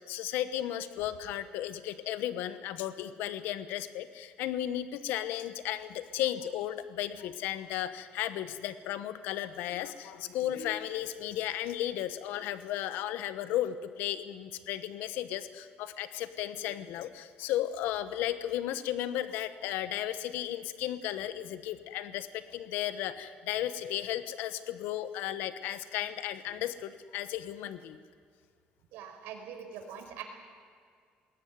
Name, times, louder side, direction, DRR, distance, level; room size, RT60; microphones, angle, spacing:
voice 1, 0.0-28.0, left 12 dB, 80° left, 12 dB, 1.1 m, -34 dB
voice 2, 28.9-30.2, right 8 dB, 85° right, 4 dB, 4.8 m, -43 dB
20.5 x 18.5 x 9.5 m, 2.1 s
cardioid pair, 160°, 3 cm